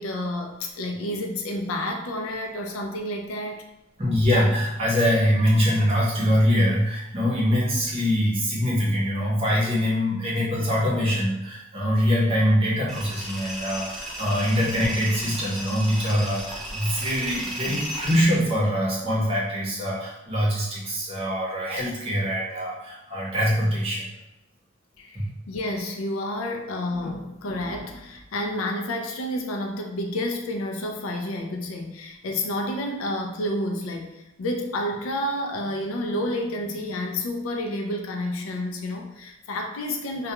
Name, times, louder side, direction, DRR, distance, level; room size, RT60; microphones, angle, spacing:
voice 1, 0.0-3.6 25.0-40.3, left 1 dB, 80° left, 3 dB, 0.4 m, -30 dB
voice 2, 4.0-24.1 25.1-25.3, equal, 30° right, -5 dB, 0.7 m, -23 dB
Tools, 12.9-18.2, right 1 dB, ahead, 0.4 m, -35 dB
2.3 x 2.2 x 2.9 m, 0.92 s
head